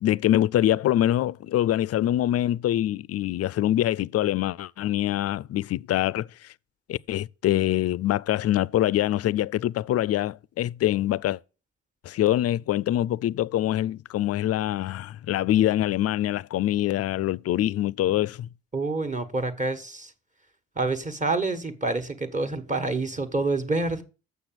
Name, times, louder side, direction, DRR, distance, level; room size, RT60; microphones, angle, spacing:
voice 1, 0.0-6.3 6.9-11.4 12.0-18.5, left 13 dB, 55° left, 0.4 m, -24 dB
voice 2, 18.7-20.1 20.8-24.0, right 3 dB, 25° right, 1.4 m, -27 dB
7.1 x 6.1 x 7.5 m
cardioid pair, 90°, 30 cm